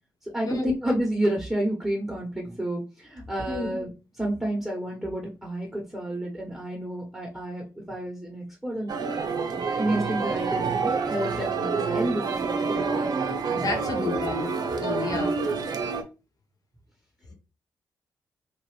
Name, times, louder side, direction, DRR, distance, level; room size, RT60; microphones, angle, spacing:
voice 1, 0.2-8.9 9.8-13.1 15.1-15.3, right 1 dB, 5° right, 1.2 m, -30 dB
sound 1, 8.9-16.0, right 5 dB, 60° right, 0.5 m, -28 dB
voice 2, 13.5-14.5 14.8-15.5, left 3 dB, 50° left, 1.1 m, -30 dB
2.9 x 2.6 x 3.2 m
hypercardioid pair, 40°, 8 cm